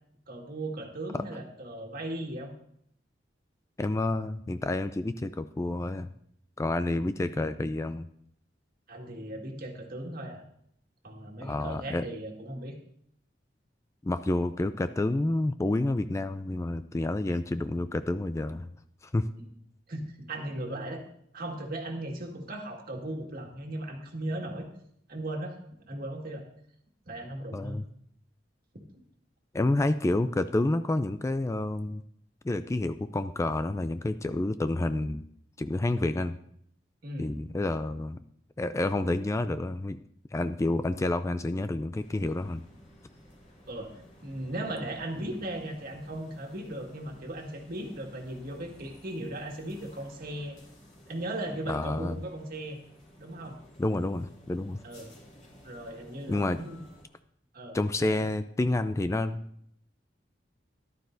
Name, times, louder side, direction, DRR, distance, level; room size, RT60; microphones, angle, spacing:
voice 1, 0.3-2.5 8.9-10.4 11.0-12.7 19.4-19.5 19.9-21.0 21.3-24.7 25.1-25.6 25.9-26.5 27.1-27.8 37.0-37.3 43.7-43.9 44.2-50.6 51.1-52.8 53.2-53.6 54.8-55.1 55.6-56.8 57.5-58.3, right 1 dB, 55° right, 1 dB, 1.8 m, -37 dB
voice 2, 3.8-6.1 6.6-8.1 11.4-12.0 14.0-18.7 19.1-19.3 27.5-27.8 29.5-32.0 32.4-35.2 35.6-36.4 37.2-38.2 38.6-40.0 40.3-42.6 51.7-52.2 53.8-54.8 56.3-56.6 57.7-59.4, left 2 dB, 15° left, 11 dB, 0.3 m, -29 dB
sound 1, 41.9-57.0, equal, 45° left, 3.0 m, -54 dB
13.5 x 11.5 x 2.6 m, 0.68 s
head